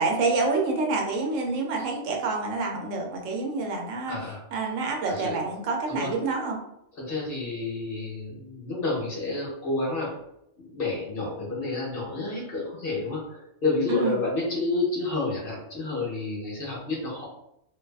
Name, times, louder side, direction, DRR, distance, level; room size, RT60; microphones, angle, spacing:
voice 1, 0.0-4.2 4.5-6.6 13.9-14.1, right 3 dB, 80° right, 1 dB, 0.9 m, -27 dB
voice 2, 4.1-4.4 5.1-5.4 5.9-6.1 6.9-10.1 10.6-17.2, left 2 dB, 55° left, -4 dB, 0.9 m, -30 dB
2.5 x 2.3 x 2.3 m, 0.81 s
omnidirectional pair, 1.3 m